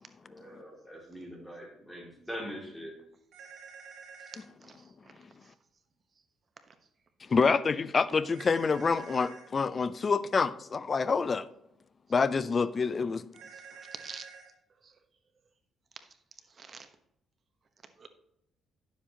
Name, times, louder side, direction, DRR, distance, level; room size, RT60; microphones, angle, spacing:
voice 1, 0.2-2.9, equal, 5° left, -1 dB, 2.4 m, -43 dB
sound 1, 3.3-4.5 8.3-9.5 13.3-14.5, right 5 dB, 80° right, 2.0 m, -49 dB
voice 2, 7.3-11.5 12.1-13.2, left 5 dB, 40° left, 16 dB, 0.4 m, -27 dB
voice 3, 13.5-14.2 14.8-14.9 16.5-16.9 18.0-18.1, right 5 dB, 45° right, 9 dB, 1.0 m, -46 dB
10.0 x 7.2 x 2.9 m, 0.80 s
cardioid pair, 90°, 0 cm